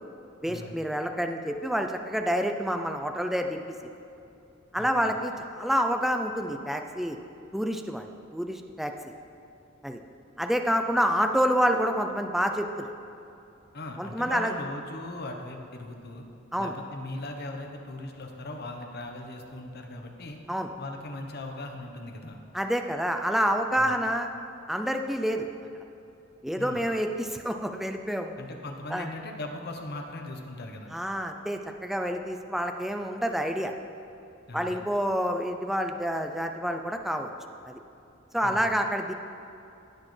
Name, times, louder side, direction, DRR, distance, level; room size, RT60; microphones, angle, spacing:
voice 1, 0.4-3.6 4.7-7.2 7.5-8.1 8.3-9.1 9.8-10.0 10.4-12.9 14.0-14.5 16.5-16.7 20.5-20.7 22.5-24.3 24.7-25.5 26.4-28.3 28.9-29.1 30.9-33.7 34.5-37.3 37.6-37.8 38.3-39.1, equal, ahead, 5 dB, 0.4 m, -28 dB
voice 2, 4.8-5.1 13.7-16.2 16.6-20.4 20.8-22.4 23.8-24.0 26.6-26.8 28.4-30.9 34.5-34.8 38.4-38.7, left 2 dB, 55° left, 3 dB, 0.9 m, -39 dB
17.0 x 6.3 x 3.2 m, 2.7 s
head